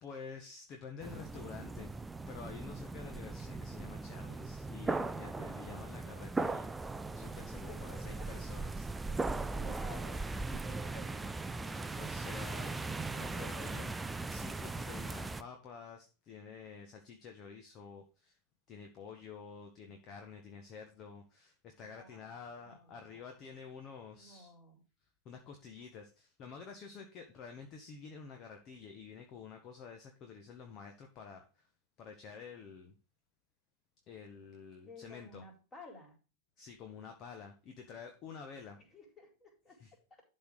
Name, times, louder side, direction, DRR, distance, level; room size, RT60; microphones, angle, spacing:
voice 1, 0.0-6.7 7.1-9.2 11.9-12.8 13.1-13.9 14.3-18.4 18.7-24.5 25.0-31.7 32.0-32.9 34.1-35.4 36.6-38.8 39.8-39.9, left 5 dB, 35° left, 4 dB, 1.5 m, -50 dB
sound 1, 1.0-15.4, right 3 dB, 10° right, 0.5 m, -39 dB
voice 2, 7.5-8.3 9.3-11.9 13.2-13.9 21.8-23.2 24.1-24.8 34.8-36.2 38.9-39.8 40.1-40.2, left 1 dB, 20° left, 1 dB, 4.3 m, -54 dB
12.0 x 4.4 x 4.9 m, 0.33 s
figure-of-eight pair, 90°, 0 cm